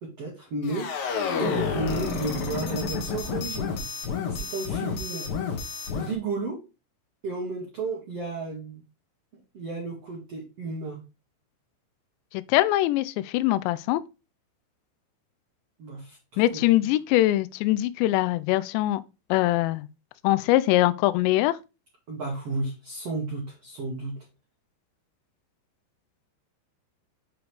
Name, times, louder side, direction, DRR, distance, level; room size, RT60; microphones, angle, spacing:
voice 1, 0.0-0.9 1.4-5.3 5.9-6.6 7.2-8.8 9.5-11.0 15.8-16.6 22.1-24.2, right 3 dB, 65° right, 1.5 m, -33 dB
sound 1, 0.6-6.2, left 5 dB, 65° left, 2.6 m, -30 dB
voice 2, 12.3-14.0 16.4-19.0 19.3-19.9 20.2-21.6, left 16 dB, 85° left, 2.5 m, -22 dB
7.9 x 4.9 x 3.3 m
omnidirectional pair, 5.6 m